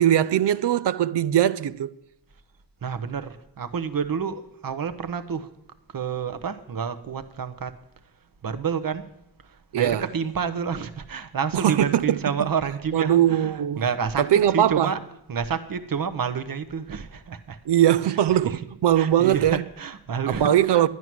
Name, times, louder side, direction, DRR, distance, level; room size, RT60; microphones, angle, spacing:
voice 1, 0.0-1.9 9.7-10.0 11.5-12.2 12.9-13.8 14.2-14.9 17.7-19.6 20.3-20.9, right 11 dB, 90° right, 0.5 m, -21 dB
voice 2, 2.8-5.5 5.9-7.8 8.4-9.1 9.4-15.0 15.3-17.6 18.0-18.1 18.4-18.6 19.0-20.8, right 6 dB, 55° right, 0.9 m, -29 dB
11.0 x 11.0 x 6.0 m
wide cardioid pair, 125°, 40 cm